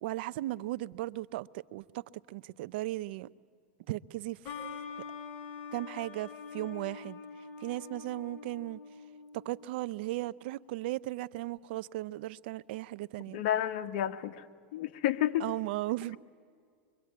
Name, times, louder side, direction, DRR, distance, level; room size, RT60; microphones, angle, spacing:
voice 1, 0.0-3.3 3.9-4.4 5.7-7.2 7.6-8.8 9.3-13.4 15.4-16.2, right 17 dB, 65° right, 0.6 m, -36 dB
sound 1, 4.4-9.9, left 6 dB, 35° left, 5.8 m, -45 dB
voice 2, 13.3-14.5 14.7-15.5, left 12 dB, 60° left, 1.3 m, -30 dB
25.5 x 23.5 x 9.4 m
supercardioid pair, 130°, 6 cm